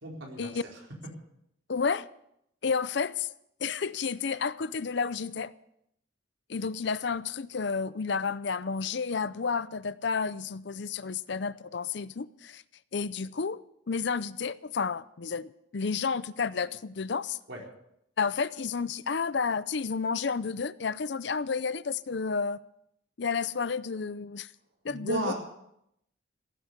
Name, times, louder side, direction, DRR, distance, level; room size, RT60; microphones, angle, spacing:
voice 1, 0.0-0.8 17.5-17.6 24.9-25.4, right 2 dB, 70° right, 4.4 m, -34 dB
voice 2, 1.7-2.1 2.6-3.3 3.6-5.5 6.5-12.6 12.9-13.6 13.9-17.4 18.2-22.6 23.2-24.5 24.8-25.3, left 5 dB, 60° left, 0.6 m, -31 dB
16.0 x 10.0 x 8.2 m
head